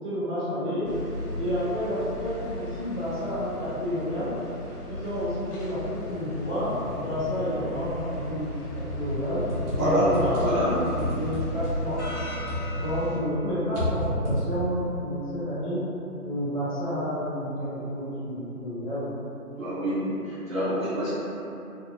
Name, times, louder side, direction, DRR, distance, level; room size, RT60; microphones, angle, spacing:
voice 1, 0.0-0.9 1.4-4.3 4.9-8.5 8.9-9.4 9.7-12.0 12.7-15.8 16.2-19.0, equal, 10° left, -25 dB, 1.0 m, -30 dB
sound 1, 0.9-13.2, equal, 70° left, 0.7 m, -36 dB
sound 2, 9.5-13.0 13.3-14.9, equal, 35° right, 1.0 m, -31 dB
voice 2, 19.6-21.1, equal, 60° right, -11 dB, 1.0 m, -27 dB
2.8 x 2.2 x 2.4 m, 2.9 s
figure-of-eight pair, 155°, 47 cm